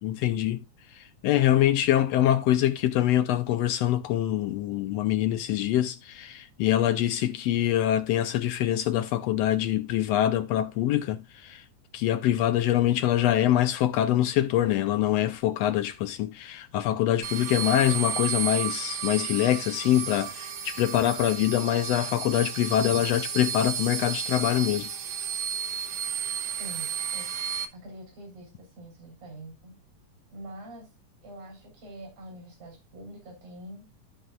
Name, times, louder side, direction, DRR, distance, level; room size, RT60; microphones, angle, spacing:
voice 1, 0.0-0.6 0.9-11.6 11.9-24.9, left 12 dB, 85° left, 1.5 m, -24 dB
sound 1, 17.2-27.7, right 8 dB, 60° right, 2.0 m, -33 dB
voice 2, 26.6-27.3 27.7-29.7 30.3-30.9 31.2-33.9, right 1 dB, 80° right, 5.1 m, -45 dB
14.5 x 5.6 x 2.3 m
omnidirectional pair, 3.4 m